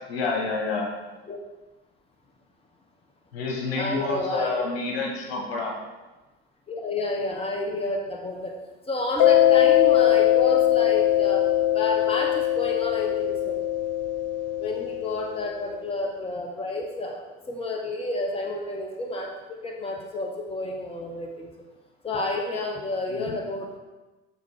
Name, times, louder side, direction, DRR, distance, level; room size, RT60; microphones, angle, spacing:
voice 1, 0.1-0.9 3.3-5.8 23.1-23.4, left 3 dB, 65° left, -1 dB, 2.1 m, -29 dB
voice 2, 3.8-4.5 6.7-8.5 8.9-13.6 14.6-21.5 22.0-23.8, left 2 dB, 20° left, 1 dB, 1.1 m, -30 dB
Mallet percussion, 9.2-15.6, left 12 dB, 50° left, 0.7 m, -21 dB
7.5 x 6.7 x 3.7 m, 1.1 s
figure-of-eight pair, 70°, 31 cm